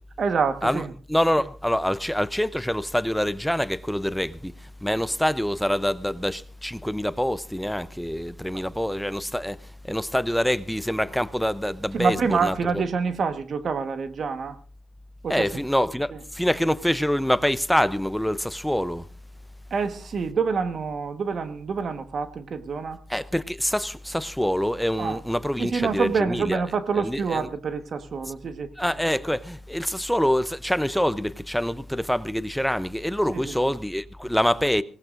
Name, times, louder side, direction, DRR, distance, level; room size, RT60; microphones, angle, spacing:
voice 1, 0.2-0.9 11.9-14.6 15.2-15.6 16.1-16.2 19.7-23.0 25.0-25.2 25.6-28.7 33.3-33.7, right 5 dB, 60° right, 1.3 m, -27 dB
voice 2, 1.1-9.6 9.8-12.8 15.3-19.1 23.1-26.6 27.0-27.5 28.8-34.8, equal, 5° left, 0.6 m, -25 dB
23.5 x 18.0 x 2.6 m
cardioid pair, 85°, 0 cm